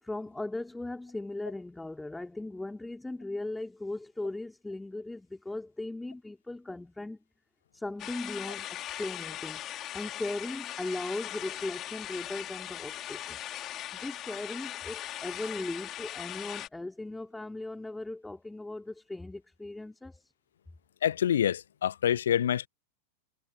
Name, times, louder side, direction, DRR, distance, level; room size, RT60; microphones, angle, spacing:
voice 1, 0.0-7.2 7.7-9.6 9.9-13.4 13.9-20.3, left 2 dB, 5° left, 3.1 m, -38 dB
sound 1, 8.0-16.7, left 13 dB, 30° left, 5.7 m, -39 dB
voice 2, 21.0-22.7, left 10 dB, 65° left, 1.1 m, -26 dB
figure-of-eight pair, 90°, 0 cm